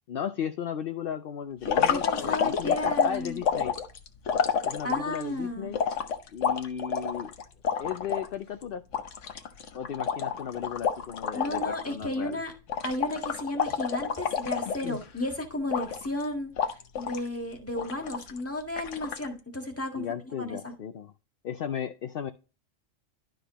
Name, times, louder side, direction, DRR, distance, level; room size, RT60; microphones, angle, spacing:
voice 1, 0.1-3.7 4.6-5.8 6.3-7.3 7.8-8.8 9.7-12.4 14.7-15.0 19.9-21.1 21.4-22.3, left 8 dB, 55° left, 9 dB, 0.7 m, -35 dB
sound 1, 1.6-5.2 5.7-8.3 8.6-8.7 8.9-11.9 12.1-12.4 12.7-15.2 15.7-16.2 16.6-17.3 17.8-18.4 18.8-19.3, left 6 dB, 70° left, 1.2 m, -29 dB
voice 2, 1.8-3.4 4.8-5.7 11.3-12.5 12.8-16.5 17.0-20.7, left 1 dB, 10° left, 2 dB, 1.7 m, -33 dB
12.0 x 5.1 x 3.0 m, 0.32 s
omnidirectional pair, 1.3 m